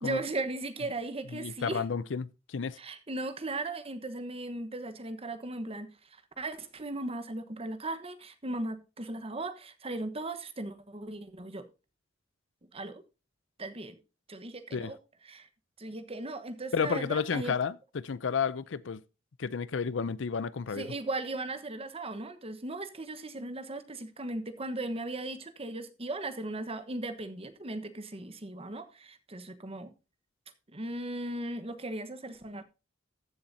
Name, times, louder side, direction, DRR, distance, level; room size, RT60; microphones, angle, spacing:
voice 1, 0.0-1.8 2.8-11.7 12.7-13.0 13.6-14.0 14.3-15.0 15.3-15.5 15.8-17.5 20.8-29.9 30.7-32.6, right 2 dB, 30° right, 1.1 m, -37 dB
voice 2, 1.3-2.8 14.7-14.9 16.7-19.0 19.4-20.9, left 6 dB, 70° left, 0.5 m, -31 dB
14.5 x 7.2 x 2.7 m
head